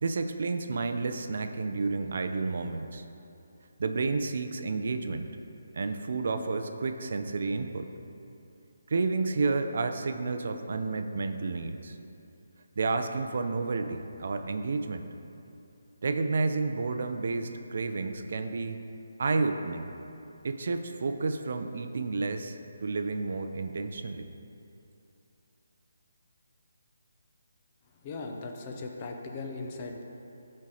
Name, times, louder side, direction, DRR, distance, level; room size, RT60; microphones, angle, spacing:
voice 1, 0.0-3.0 3.8-5.3 5.7-7.9 8.9-12.0 12.8-15.0 16.0-18.8 19.2-19.9 20.4-24.3, right 3 dB, 50° right, 7 dB, 0.5 m, -31 dB
voice 2, 28.0-30.0, left 3 dB, 20° left, 1 dB, 0.6 m, -38 dB
11.5 x 4.4 x 4.8 m, 2.8 s
hypercardioid pair, 170°, 0 cm